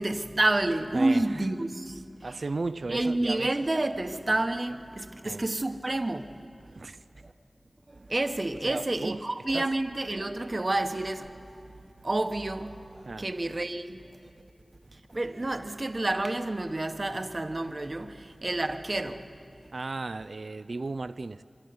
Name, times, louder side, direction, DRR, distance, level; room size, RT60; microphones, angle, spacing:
voice 1, 0.0-2.4 2.9-6.4 7.2-7.3 7.9-11.7 12.0-14.3 14.9-19.3, right 2 dB, 40° right, 1.1 m, -29 dB
voice 2, 0.9-1.4 2.2-3.5 5.2-5.4 6.8-7.0 8.6-9.2 9.5-9.7 13.1-13.3 19.7-21.4, right 3 dB, 70° right, 0.4 m, -35 dB
24.5 x 13.5 x 9.5 m
wide cardioid pair, 70°, 0 cm